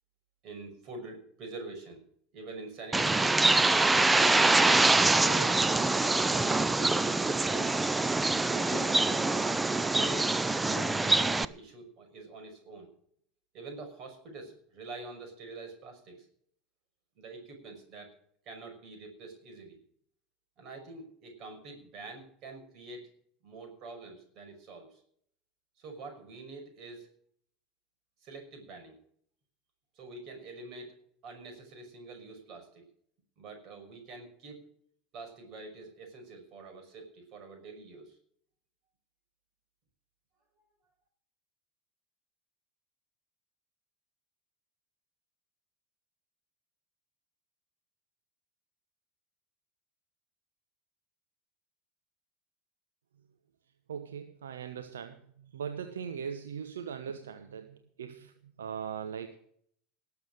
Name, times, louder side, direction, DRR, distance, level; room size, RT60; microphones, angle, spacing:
voice 1, 0.4-2.0 2.3-3.3 4.1-7.8 8.5-9.4 9.9-12.9 13.5-16.2 17.2-18.1 18.5-19.8 20.6-23.1 23.4-24.9 25.8-27.1 28.2-29.0 30.0-30.9 31.2-32.8 33.4-34.6 35.1-38.1, right 3 dB, 50° right, 4 dB, 5.7 m, -45 dB
Bird, 2.9-11.4, right 2 dB, 15° right, 0.6 m, -25 dB
voice 2, 53.9-58.3 58.6-59.4, right 7 dB, 80° right, 7 dB, 1.1 m, -40 dB
19.0 x 7.2 x 6.5 m, 0.64 s
hypercardioid pair, 80°, 0 cm